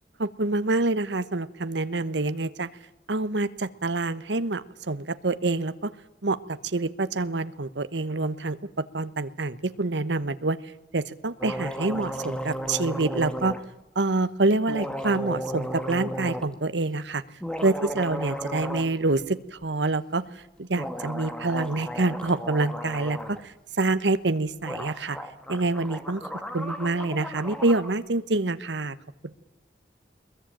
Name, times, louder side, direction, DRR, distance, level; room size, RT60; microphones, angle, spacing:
voice 1, 0.2-2.7 3.1-5.9 6.2-6.4 6.6-8.6 8.9-10.6 10.9-13.6 13.9-17.2 17.6-25.2 25.5-26.3 26.5-29.0, right 2 dB, 75° right, 14 dB, 1.1 m, -26 dB
sound 1, 11.4-13.6 14.7-16.5 17.3-18.9 19.2-19.3 20.7-23.4 24.4-24.5 24.6-27.9, equal, 5° left, 1.9 m, -34 dB
21.5 x 21.5 x 9.0 m, 0.91 s
head